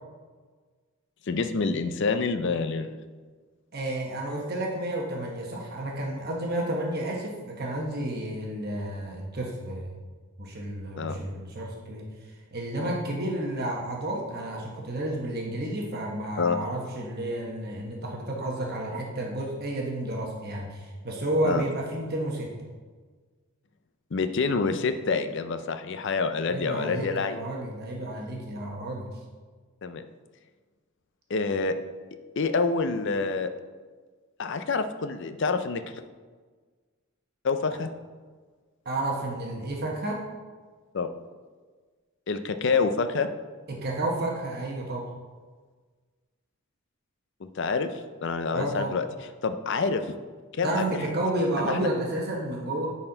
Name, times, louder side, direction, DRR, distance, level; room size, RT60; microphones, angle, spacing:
voice 1, 1.3-3.0 11.0-11.2 16.4-16.6 21.4-21.6 24.1-27.4 29.8-30.0 31.3-31.7 32.4-33.5 34.4-35.8 37.4-37.9 40.9-41.1 42.3-43.3 47.4-47.9 48.2-49.1 49.4-50.0 50.5-51.0 51.6-51.9, left 4 dB, 55° left, 9 dB, 0.5 m, -27 dB
voice 2, 3.7-10.0 10.4-12.0 12.5-22.5 26.5-29.1 38.8-40.2 43.7-45.1 48.5-49.0 50.6-52.9, right 1 dB, 45° right, -1 dB, 1.0 m, -31 dB
9.9 x 4.2 x 3.8 m, 1.5 s
head